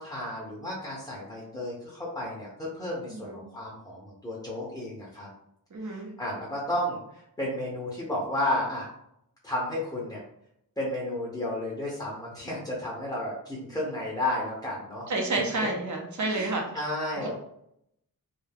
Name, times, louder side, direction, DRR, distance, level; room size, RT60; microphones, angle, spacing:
voice 1, 0.0-5.3 5.8-8.9 9.4-10.2 10.8-15.1 16.3-17.3, left 1 dB, 10° left, -4 dB, 0.6 m, -32 dB
voice 2, 5.7-6.1 15.1-16.6, right 2 dB, 55° right, 1 dB, 0.7 m, -29 dB
2.3 x 2.3 x 3.3 m, 0.76 s
wide cardioid pair, 75°, 35 cm